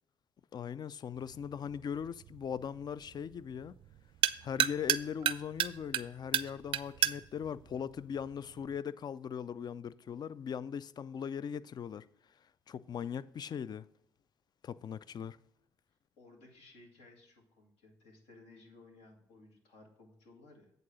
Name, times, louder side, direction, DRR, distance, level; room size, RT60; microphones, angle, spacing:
voice 1, 0.5-3.7 4.4-12.1 12.7-13.9 14.6-15.4, left 7 dB, 45° left, 0.4 m, -39 dB
sound 1, 1.1-8.8, right 11 dB, 60° right, 0.4 m, -35 dB
voice 2, 16.2-20.7, left 2 dB, 75° left, 1.9 m, -58 dB
8.5 x 3.9 x 6.1 m
hypercardioid pair, 55°, 10 cm